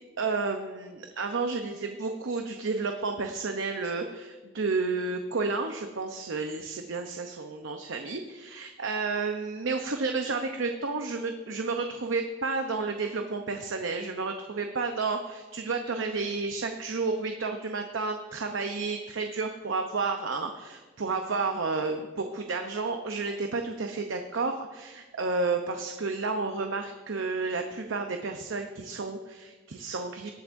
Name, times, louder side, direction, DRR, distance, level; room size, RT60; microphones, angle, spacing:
voice 1, 0.2-30.3, right 4 dB, 80° right, 5 dB, 0.7 m, -31 dB
19.5 x 8.1 x 2.6 m, 1.3 s
head